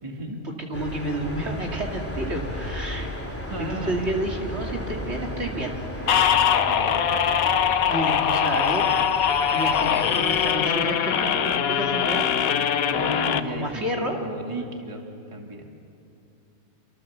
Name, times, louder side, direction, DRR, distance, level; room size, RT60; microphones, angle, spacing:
voice 1, 0.0-0.4 3.5-4.1 6.6-7.1 12.8-15.7, right 1 dB, 20° right, 1 dB, 2.3 m, -34 dB
voice 2, 0.6-3.3 3.6-5.8 7.9-8.9 9.5-12.3 13.5-14.2, right 1 dB, 50° right, 0 dB, 2.6 m, -30 dB
sound 1, 0.7-10.5, equal, 10° left, 2.9 m, -35 dB
sound 2, 6.1-13.4, left 8 dB, 80° left, 1.3 m, -22 dB
27.5 x 26.5 x 7.2 m, 2.6 s
omnidirectional pair, 1.5 m